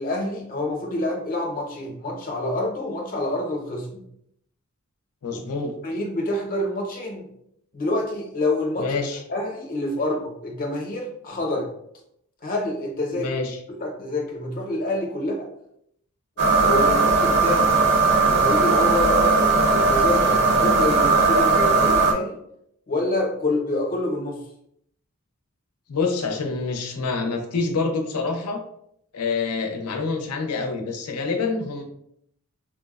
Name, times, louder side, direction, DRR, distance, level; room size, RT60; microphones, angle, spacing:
voice 1, 0.0-4.0 5.8-7.3 7.7-9.0 9.3-11.7 12.4-13.3 13.8-15.5 16.6-17.8 18.2-22.4 22.9-24.4, left 1 dB, 40° left, 1 dB, 0.6 m, -27 dB
voice 2, 5.2-5.7 8.8-9.2 13.2-13.6 25.9-28.6 29.1-31.8, left 4 dB, 90° left, 4 dB, 0.5 m, -26 dB
sound 1, 16.4-22.1, right 3 dB, 50° right, 0.6 m, -18 dB
4.5 x 2.0 x 2.3 m, 0.72 s
head